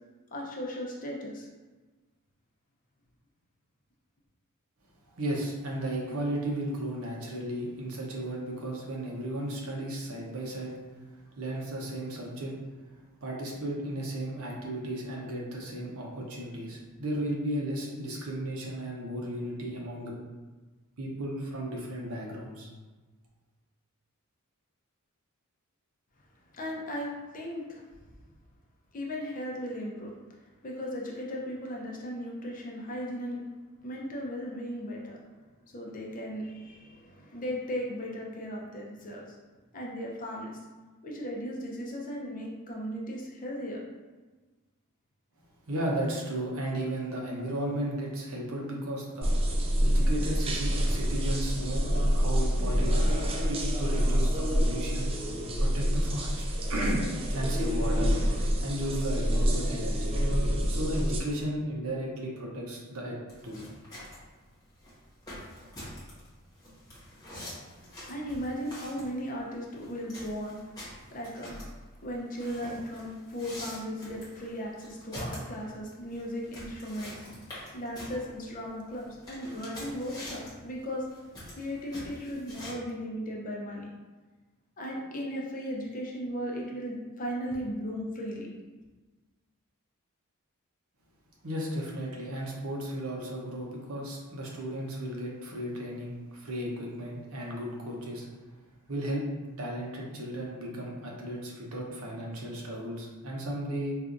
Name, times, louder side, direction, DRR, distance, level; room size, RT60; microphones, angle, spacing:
voice 1, 0.3-1.5 26.5-27.8 28.9-30.1 30.6-33.4 33.8-35.2 35.7-39.2 39.7-40.5 41.0-43.8 68.1-70.6 71.1-71.6 72.0-77.2 77.7-81.1 81.6-83.9 84.8-88.5, equal, 40° left, -2 dB, 0.6 m, -36 dB
voice 2, 5.1-10.7 11.1-12.5 13.2-20.1 21.0-22.7 45.7-49.3 49.8-51.9 52.1-53.0 53.5-55.1 55.6-57.0 57.3-58.1 58.6-60.1 60.7-63.2 63.4-63.6 91.4-98.3 98.9-99.3 99.6-103.9, right 1 dB, 75° right, -2 dB, 0.8 m, -34 dB
sound 1, 49.2-61.2, equal, 25° right, 0.3 m, -27 dB
sound 2, 63.3-82.7, left 1 dB, 20° left, 1.1 m, -45 dB
4.4 x 2.4 x 2.5 m, 1.3 s
head